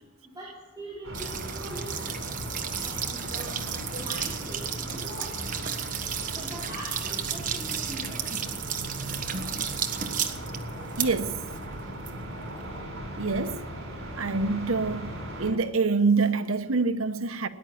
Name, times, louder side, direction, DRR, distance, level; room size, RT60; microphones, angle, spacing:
voice 1, 0.3-2.2 2.8-5.4 6.3-8.2, right 1 dB, 20° right, 4.2 m, -42 dB
sound 1, 1.0-15.5, right 1 dB, 65° right, 5.4 m, -38 dB
sound 2, 1.1-12.8, right 8 dB, 40° right, 1.3 m, -34 dB
voice 2, 11.0-11.4 13.2-13.6 14.2-15.1 15.4-17.5, right 4 dB, 85° right, 1.0 m, -26 dB
19.0 x 10.5 x 7.0 m
head